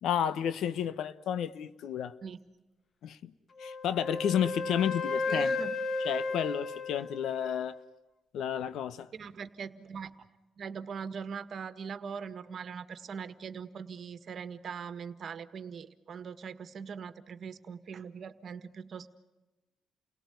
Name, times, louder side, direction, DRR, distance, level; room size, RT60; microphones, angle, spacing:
voice 1, 0.0-2.1 3.0-3.3 3.6-5.6 6.0-7.8 8.3-9.1, left 9 dB, 75° left, 1.1 m, -31 dB
Wind instrument woodwind instrument, 3.6-7.8, left 3 dB, 45° left, 1.4 m, -34 dB
voice 2, 5.3-5.8 9.1-10.1 10.6-19.1, right 6 dB, 55° right, 1.7 m, -41 dB
29.5 x 18.0 x 9.3 m
cardioid pair, 90°, 0 cm